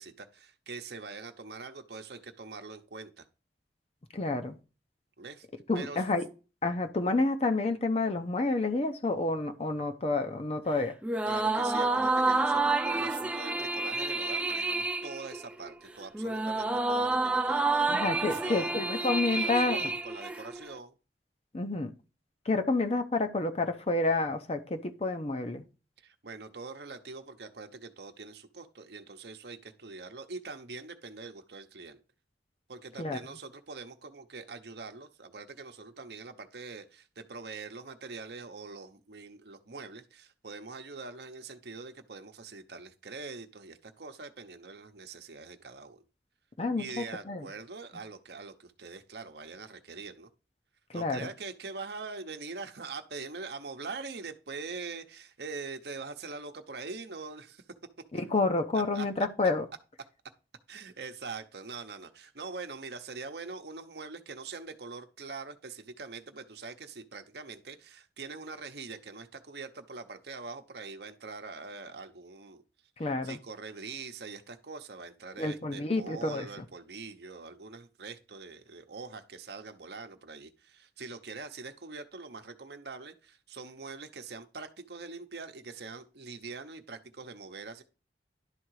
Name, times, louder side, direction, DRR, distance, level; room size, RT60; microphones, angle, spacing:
voice 1, 0.0-3.3 5.2-5.5 5.7-6.0 11.3-20.9 26.0-32.0 32.7-46.0 46.8-50.3 50.9-57.6 58.7-59.1 60.7-72.6 73.0-87.8, right 4 dB, 65° right, 0.9 m, -43 dB
voice 2, 4.1-4.5 5.7-6.3 6.6-10.9 17.9-19.9 21.5-21.9 22.5-25.6 33.0-33.2 46.6-47.5 50.9-51.3 58.1-59.7 73.0-73.4 75.4-76.5, left 3 dB, 35° left, 0.7 m, -29 dB
sound 1, 11.0-20.7, right 3 dB, 5° right, 0.4 m, -29 dB
11.5 x 3.8 x 4.7 m
head